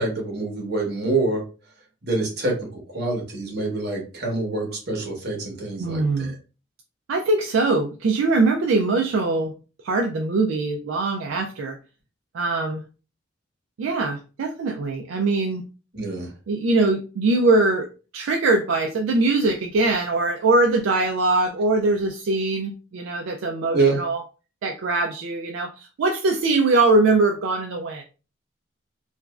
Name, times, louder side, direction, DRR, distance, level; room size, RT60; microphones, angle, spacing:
voice 1, 0.0-1.4 2.0-6.4 15.9-16.3 23.7-24.0, right 3 dB, 50° right, -1 dB, 1.0 m, -26 dB
voice 2, 5.8-6.3 7.1-9.5 9.8-11.8 12.3-12.8 13.8-15.6 16.5-17.9 18.1-24.2 24.6-28.0, right 3 dB, 75° right, 3 dB, 0.3 m, -22 dB
3.0 x 2.4 x 2.3 m, 0.34 s
head